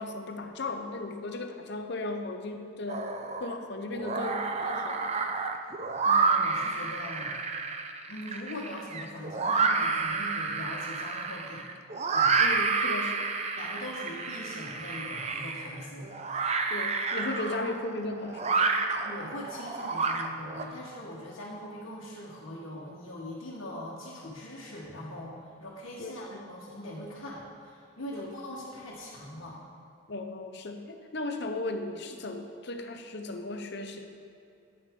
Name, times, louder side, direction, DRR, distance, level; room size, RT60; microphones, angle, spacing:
voice 1, 0.0-3.1 3.4-5.1 12.4-13.3 16.7-18.7 26.0-26.2 28.1-28.3 30.1-34.1, left 2 dB, 55° left, 5 dB, 0.8 m, -36 dB
sound 1, 2.9-3.6 3.9-20.6, right 4 dB, 30° right, 0.5 m, -29 dB
voice 2, 5.7-7.4 8.1-11.6 12.1-12.3 13.6-16.1 19.0-29.6, left 1 dB, 80° left, -7 dB, 1.5 m, -41 dB
10.0 x 9.2 x 3.7 m, 2.6 s
head